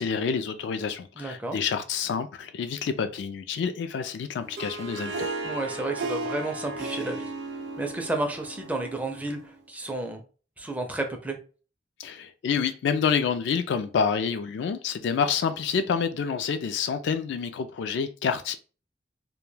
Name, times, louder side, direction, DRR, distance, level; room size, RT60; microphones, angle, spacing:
voice 1, 0.0-5.3 12.0-18.5, left 6 dB, 65° left, 0.3 m, -28 dB
voice 2, 1.2-1.6 5.4-7.3 7.8-10.2 10.6-11.4, right 2 dB, 10° right, 0.4 m, -32 dB
Harp, 4.4-9.6, right 2 dB, 65° right, 0.5 m, -35 dB
2.2 x 2.2 x 3.1 m
head